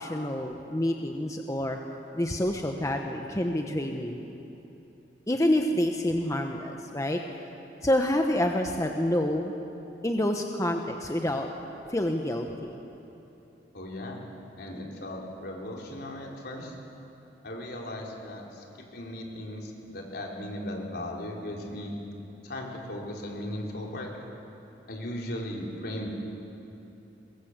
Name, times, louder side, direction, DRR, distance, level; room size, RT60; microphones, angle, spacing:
voice 1, 0.0-1.8 2.1-4.2 5.3-7.2 7.8-9.5 10.0-11.5 11.9-12.8, left 1 dB, 20° left, 3 dB, 1.1 m, -27 dB
voice 2, 13.7-14.2 14.6-16.7 17.4-21.9 22.4-24.1 24.9-26.1, left 1 dB, 65° left, -1 dB, 4.1 m, -37 dB
22.5 x 21.5 x 8.1 m, 3.0 s
head